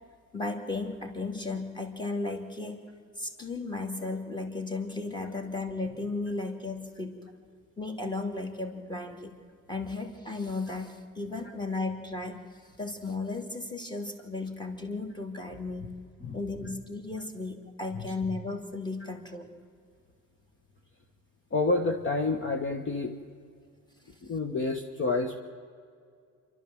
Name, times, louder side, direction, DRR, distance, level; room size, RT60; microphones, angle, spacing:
voice 1, 0.3-2.8 3.2-7.2 7.8-9.3 9.7-12.4 12.8-15.9 16.3-19.5, left 3 dB, 15° left, 4 dB, 2.7 m, -35 dB
voice 2, 21.5-23.1 24.2-25.4, left 3 dB, 40° left, 4 dB, 1.5 m, -28 dB
28.0 x 12.5 x 7.7 m, 2.2 s
cardioid pair, 125°, 32 cm